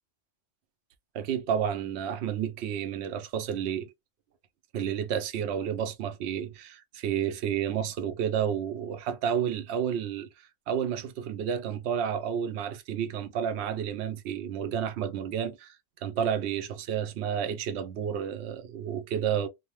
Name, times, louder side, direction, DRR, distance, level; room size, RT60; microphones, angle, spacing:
voice 1, 1.1-3.9 4.7-10.3 10.7-15.8 16.0-19.5, right 8 dB, 70° right, 0.8 m, -31 dB
2.8 x 2.1 x 3.0 m
omnidirectional pair, 1.2 m